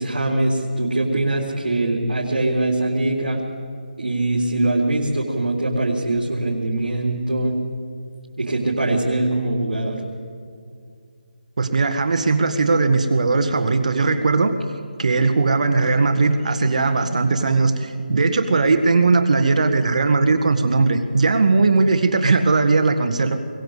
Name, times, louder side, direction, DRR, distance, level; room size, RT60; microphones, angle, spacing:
voice 1, 0.0-3.4 4.0-7.6 8.4-10.0, right 2 dB, 80° right, -3 dB, 4.0 m, -22 dB
voice 2, 11.6-14.5 15.0-23.4, right 3 dB, 50° right, 7 dB, 1.6 m, -18 dB
22.0 x 20.5 x 8.2 m, 2.3 s
figure-of-eight pair, 170°, 5 cm